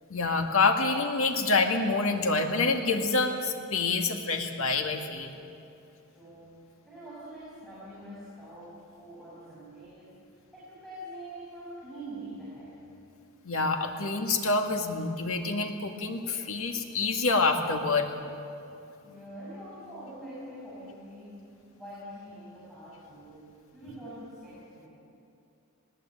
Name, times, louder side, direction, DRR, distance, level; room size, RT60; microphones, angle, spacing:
voice 1, 0.1-5.3 13.4-18.1, left 3 dB, 70° left, 4 dB, 2.1 m, -27 dB
voice 2, 6.0-12.8 19.0-24.9, right 1 dB, ahead, -9 dB, 5.8 m, -45 dB
20.0 x 18.5 x 9.1 m, 2.7 s
head